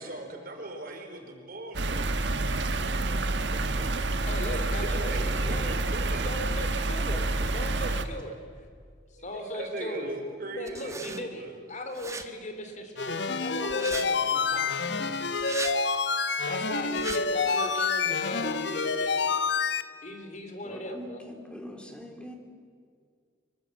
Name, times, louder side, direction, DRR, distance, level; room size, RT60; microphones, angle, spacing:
voice 1, 0.0-2.1 4.4-6.3 9.3-11.5, right 2 dB, 55° right, 4 dB, 4.4 m, -39 dB
sound 1, 1.7-8.0, right 2 dB, 70° right, 1.6 m, -28 dB
voice 2, 4.3-5.8 6.2-8.4 9.2-10.1 10.5-15.3 16.4-19.3 20.0-21.2, left 1 dB, 40° left, 6 dB, 3.3 m, -38 dB
sound 2, 10.7-11.2 11.9-12.2 13.7-14.1 15.4-15.8 17.0-17.2, right 4 dB, 15° right, 1.4 m, -37 dB
sound 3, 13.0-19.8, left 4 dB, 70° left, 1.2 m, -28 dB
voice 3, 20.6-22.4, equal, 5° left, 3 dB, 3.0 m, -42 dB
25.0 x 23.0 x 7.7 m, 2.1 s
head